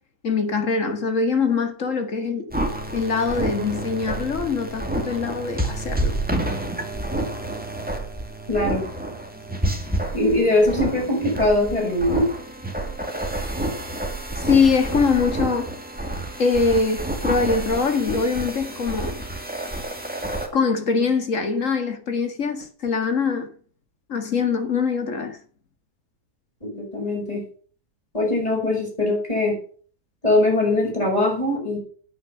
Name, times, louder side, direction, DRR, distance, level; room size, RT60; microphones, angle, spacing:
voice 1, 0.2-2.5 2.9-6.1 14.4-15.7 16.4-19.2 20.5-23.5 24.1-25.4, left 5 dB, 50° left, 2.2 m, -23 dB
sound 1, 2.5-20.5, right 1 dB, 5° right, 2.0 m, -29 dB
voice 2, 8.5-8.8 10.1-12.3 26.6-27.4 28.1-29.5 30.2-31.8, left 2 dB, 25° left, 6.5 m, -21 dB
9.6 x 9.3 x 6.7 m
omnidirectional pair, 1.7 m